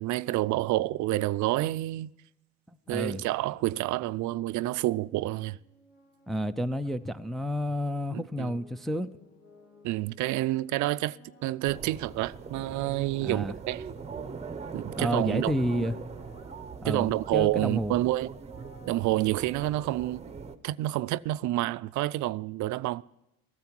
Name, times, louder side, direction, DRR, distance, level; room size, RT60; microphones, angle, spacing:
voice 1, 0.0-2.1 2.9-5.6 8.1-8.5 9.8-11.2 11.4-13.8 14.7-15.5 16.8-18.3 18.9-20.2 20.6-23.0, right 17 dB, 65° right, 0.4 m, -28 dB
voice 2, 2.7-3.2 6.3-9.1 13.2-13.5 14.9-16.0 16.8-18.0, equal, ahead, 0.4 m, -30 dB
sound 1, 2.8-20.5, left 2 dB, 50° left, 3.1 m, -58 dB
sound 2, 11.6-20.5, right 5 dB, 20° right, 0.8 m, -41 dB
14.5 x 13.0 x 4.5 m
cardioid pair, 145°, 32 cm